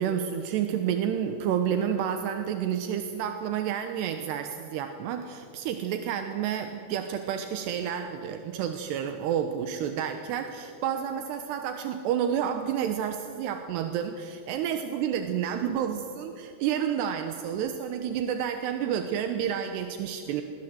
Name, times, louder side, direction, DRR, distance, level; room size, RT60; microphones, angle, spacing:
voice 1, 0.0-20.4, right 9 dB, 80° right, 6 dB, 3.2 m, -30 dB
28.0 x 21.0 x 7.9 m, 2.6 s
omnidirectional pair, 4.8 m